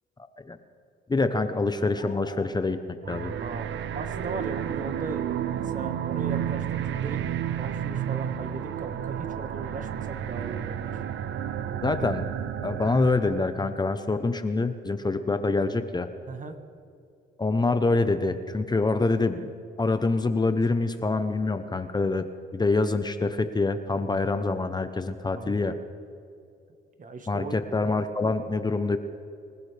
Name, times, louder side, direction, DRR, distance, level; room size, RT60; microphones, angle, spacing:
voice 1, 1.1-3.3 11.8-12.2 12.6-16.1 17.4-19.5 19.8-22.3 22.5-25.7 27.3-29.0, left 3 dB, 20° left, 9 dB, 0.8 m, -25 dB
sound 1, 2.0-2.5, left 4 dB, 40° left, 1.9 m, -43 dB
sound 2, 3.0-13.7, right 9 dB, 70° right, 0.8 m, -31 dB
voice 2, 3.4-5.2 5.5-7.2 7.5-11.0 16.3-16.5 25.3-25.6 27.0-27.6, right 3 dB, 40° right, 7 dB, 1.5 m, -38 dB
25.5 x 15.0 x 3.4 m, 2.4 s
cardioid pair, 90°, 20 cm